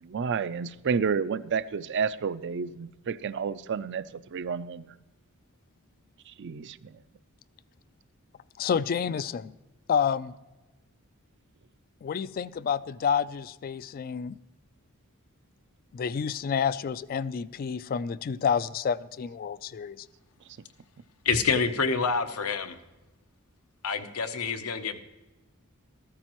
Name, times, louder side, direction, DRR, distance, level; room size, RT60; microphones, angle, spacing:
voice 1, 0.0-4.0 4.3-4.9 6.3-7.0, right 6 dB, 55° right, 0.4 m, -30 dB
voice 2, 8.6-9.5 9.9-10.3 12.0-14.4 15.9-20.1, left 7 dB, 40° left, 0.3 m, -29 dB
voice 3, 21.2-22.8 23.8-25.0, left 5 dB, 80° left, 0.8 m, -27 dB
14.0 x 13.5 x 3.0 m
head